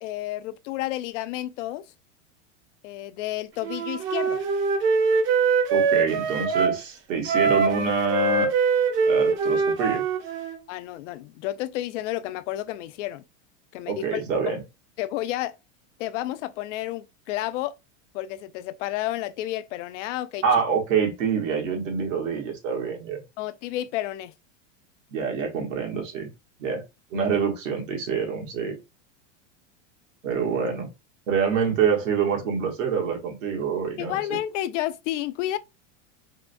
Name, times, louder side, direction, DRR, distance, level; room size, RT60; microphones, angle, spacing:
voice 1, 0.0-1.9 2.8-4.4 10.7-13.2 13.7-14.2 15.0-15.6 16.0-17.8 18.1-20.4 23.4-24.3 34.0-35.6, left 14 dB, 70° left, 0.5 m, -31 dB
Wind instrument woodwind instrument, 3.6-6.8 7.3-10.6, right 4 dB, 30° right, 0.6 m, -23 dB
voice 2, 5.7-8.5 9.0-10.0 13.9-14.6 20.4-23.2 25.1-26.3 26.6-26.8 27.1-28.7 30.2-30.9 31.3-34.4, right 6 dB, 85° right, 1.5 m, -26 dB
3.6 x 2.2 x 2.5 m
supercardioid pair, 140°, 38 cm